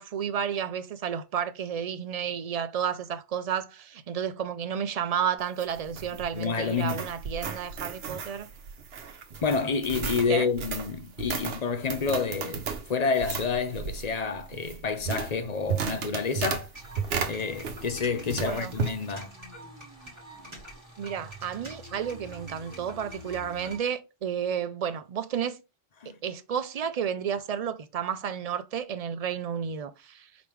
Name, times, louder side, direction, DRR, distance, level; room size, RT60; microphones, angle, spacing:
voice 1, 0.0-8.5 10.3-10.5 18.4-18.7 21.0-25.6 26.2-30.3, right 8 dB, 45° right, 0.5 m, -31 dB
sound 1, 5.4-18.0 18.3-19.0, right 5 dB, 70° right, 1.0 m, -34 dB
voice 2, 6.3-7.0 9.4-16.7 17.3-19.3 26.0-26.2, left 5 dB, 45° left, 0.8 m, -29 dB
sound 2, 16.7-23.8, equal, 25° right, 1.8 m, -45 dB
5.1 x 3.4 x 3.1 m
omnidirectional pair, 1.1 m